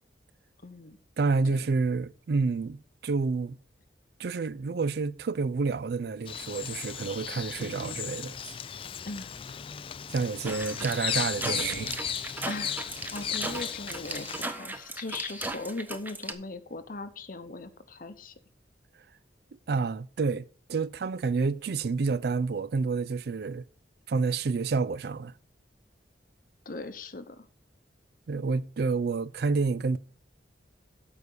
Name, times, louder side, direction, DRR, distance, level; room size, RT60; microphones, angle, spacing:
voice 1, 0.6-1.0 1.5-1.6 7.6-8.0 9.1-9.3 12.5-12.8 13.1-18.3 26.6-27.5, left 3 dB, 50° left, 0.8 m, -39 dB
voice 2, 1.2-2.8 3.0-3.6 4.2-8.5 10.1-12.0 19.7-23.6 24.1-25.3 28.3-30.0, right 4 dB, 60° right, 0.4 m, -29 dB
Bird vocalization bird call bird song, 6.3-14.4, left 8 dB, 30° left, 0.3 m, -36 dB
sound 1, 10.4-16.3, right 2 dB, 10° right, 0.7 m, -37 dB
8.4 x 5.0 x 6.8 m
head